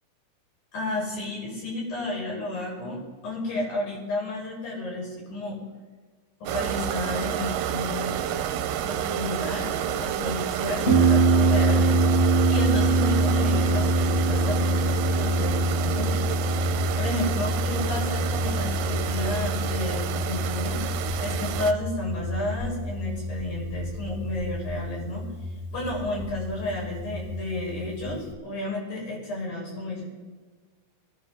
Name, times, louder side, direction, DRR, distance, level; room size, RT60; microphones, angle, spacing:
voice 1, 0.7-5.6 6.4-8.5 8.8-12.0 12.5-25.2 25.7-30.0, left 2 dB, 85° left, -4 dB, 8.2 m, -32 dB
sound 1, 6.5-21.7, right 10 dB, 90° right, 2.4 m, -30 dB
Harp, 10.9-28.3, right 1 dB, 30° left, 1.0 m, -25 dB
25.5 x 12.0 x 3.9 m, 1.4 s
omnidirectional pair, 3.9 m